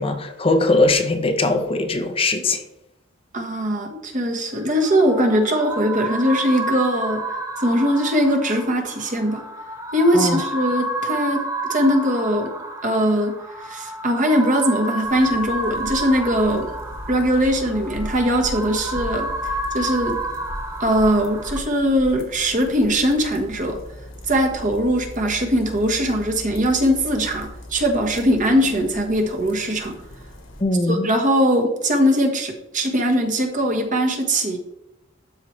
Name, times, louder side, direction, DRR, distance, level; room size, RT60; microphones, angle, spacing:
voice 1, 0.0-2.6 10.1-10.4 30.6-31.1, left 2 dB, 30° left, 0.7 m, -20 dB
voice 2, 3.3-7.3 7.6-9.4 9.9-11.4 11.7-12.5 12.8-16.7 17.1-19.3 19.7-20.2 20.8-23.8 24.3-30.0 30.9-34.6, equal, 40° right, 1.3 m, -20 dB
sound 1, 4.6-21.6, right 2 dB, 15° right, 0.9 m, -30 dB
sound 2, 15.0-30.6, left 1 dB, 85° left, 1.9 m, -38 dB
12.5 x 4.6 x 3.2 m
head